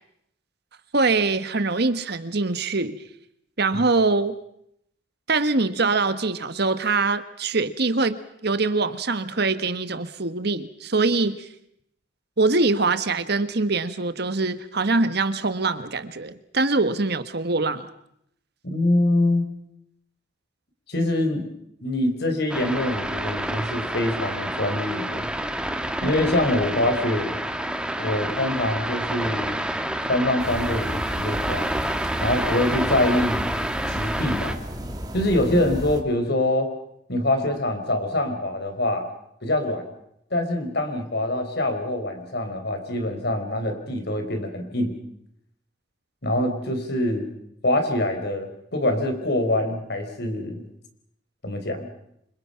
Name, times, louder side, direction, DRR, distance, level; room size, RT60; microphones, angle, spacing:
voice 1, 0.9-3.0 3.6-4.3 5.3-11.5 12.4-17.9, right 3 dB, 55° right, 11 dB, 1.4 m, -23 dB
voice 2, 18.6-19.5 20.9-21.5 21.8-25.3 26.0-27.3 28.0-29.5 30.0-31.7 32.2-33.5 33.9-34.6 35.1-36.7 37.1-39.1 39.4-39.9 40.3-45.0 46.2-47.3 47.6-50.6 51.4-51.9, left 1 dB, 55° left, 6 dB, 4.9 m, -24 dB
sound 1, 22.5-34.5, right 1 dB, 5° right, 1.5 m, -28 dB
sound 2, 30.4-36.0, equal, 20° right, 2.6 m, -33 dB
29.0 x 26.0 x 5.8 m, 0.76 s
head